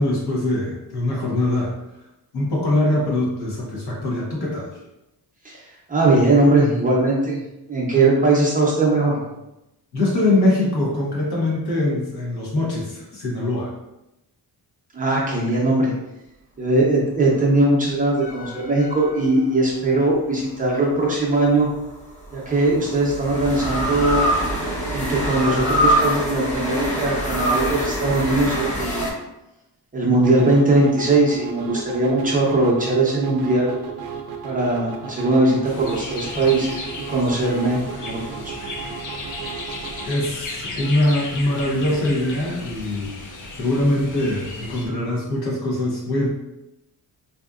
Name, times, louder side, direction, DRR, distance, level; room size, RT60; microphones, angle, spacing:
voice 1, 0.0-1.7 2.3-4.7 9.9-13.7 40.0-46.3, left 1 dB, 65° left, -4 dB, 1.3 m, -22 dB
voice 2, 5.9-7.4 7.7-9.3 14.9-15.9 16.6-21.7 22.3-24.3 24.9-29.1 29.9-33.7 34.4-38.5, right 2 dB, 20° right, -5 dB, 0.6 m, -20 dB
sound 1, 18.2-19.7 21.6-29.1, right 1 dB, 15° left, 0.9 m, -24 dB
sound 2, 30.1-40.1, right 6 dB, 60° right, 0.5 m, -35 dB
sound 3, 35.6-44.9, left 2 dB, 50° left, 0.6 m, -35 dB
4.2 x 2.7 x 2.4 m, 0.92 s
wide cardioid pair, 165°, 41 cm